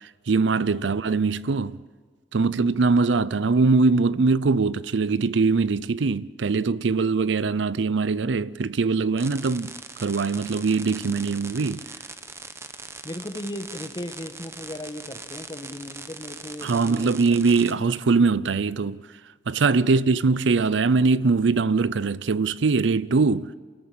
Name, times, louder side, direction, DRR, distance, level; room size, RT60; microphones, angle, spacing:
voice 1, 0.3-1.8 2.3-9.7 10.0-11.8 16.6-19.0 19.5-23.5, right 4 dB, 75° right, 0.5 m, -22 dB
sound 1, 9.2-17.7, right 3 dB, 15° right, 0.9 m, -41 dB
voice 2, 13.0-17.2 19.7-19.9, left 1 dB, 25° left, 1.2 m, -37 dB
28.0 x 14.0 x 8.6 m
head